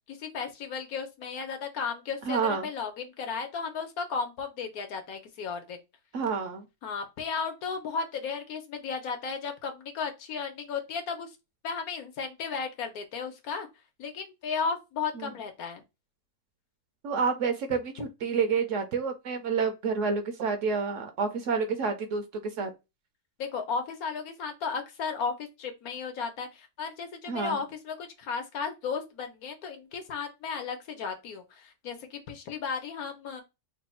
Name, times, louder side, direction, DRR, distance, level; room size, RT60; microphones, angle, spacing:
voice 1, 0.1-5.8 6.8-11.3 11.6-13.7 14.0-15.8 23.4-33.4, left 5 dB, 75° left, 1.3 m, -34 dB
voice 2, 2.2-2.7 6.1-6.6 15.2-15.3 17.0-22.2 22.6-22.7 27.3-27.6, right 5 dB, 65° right, 0.9 m, -29 dB
3.3 x 2.3 x 4.2 m
omnidirectional pair, 1.6 m